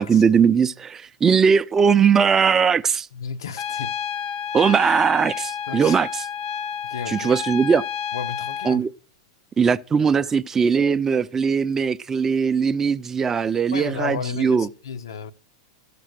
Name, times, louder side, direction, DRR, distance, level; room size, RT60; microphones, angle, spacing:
voice 1, 0.0-3.1 4.5-6.2 7.1-7.8 8.6-8.9 9.6-14.7, right 6 dB, 20° right, 0.4 m, -19 dB
voice 2, 3.1-4.0 5.7-6.0 6.8-7.3 8.1-8.9 13.7-15.3, left 6 dB, 85° left, 0.7 m, -33 dB
Trumpet, 3.6-8.8, left 8 dB, 40° left, 0.5 m, -30 dB
13.5 x 6.8 x 6.3 m
hypercardioid pair, 130°, 2 cm